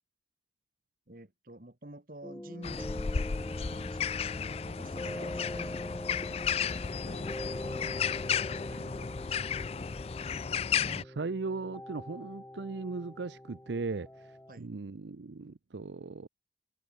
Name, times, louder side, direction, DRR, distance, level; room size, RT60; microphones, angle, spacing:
voice 1, 1.1-9.6 14.5-14.7, right 1 dB, 50° right, 2.0 m, -51 dB
sound 1, 2.2-14.6, left 1 dB, 10° left, 0.8 m, -43 dB
sound 2, 2.6-11.0, left 7 dB, 35° left, 0.4 m, -33 dB
sound 3, 9.5-9.6, right 1 dB, 25° right, 3.1 m, -66 dB
voice 2, 10.8-16.3, right 3 dB, 75° right, 0.6 m, -38 dB
head